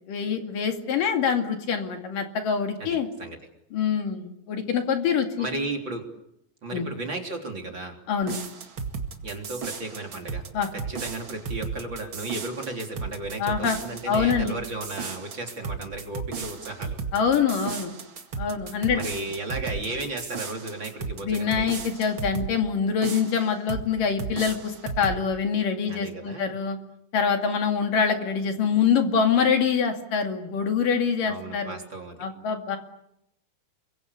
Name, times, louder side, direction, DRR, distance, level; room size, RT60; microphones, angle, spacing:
voice 1, 0.1-3.1 3.7-5.5 6.7-6.9 8.1-8.4 10.5-10.7 13.4-13.8 14.0-14.6 17.1-17.9 18.4-19.0 21.2-26.8 27.1-31.8 32.2-32.8, left 6 dB, 50° left, 5 dB, 3.5 m, -25 dB
voice 2, 5.4-6.1 6.6-7.9 9.2-10.4 10.7-17.0 18.9-21.7 25.8-26.5 31.2-32.3, right 2 dB, 25° right, 2 dB, 3.4 m, -34 dB
sound 1, 8.2-22.5 23.0-23.9 24.2-25.2, right 5 dB, 45° right, 1.6 m, -35 dB
28.5 x 23.5 x 8.4 m, 0.79 s
omnidirectional pair, 5.5 m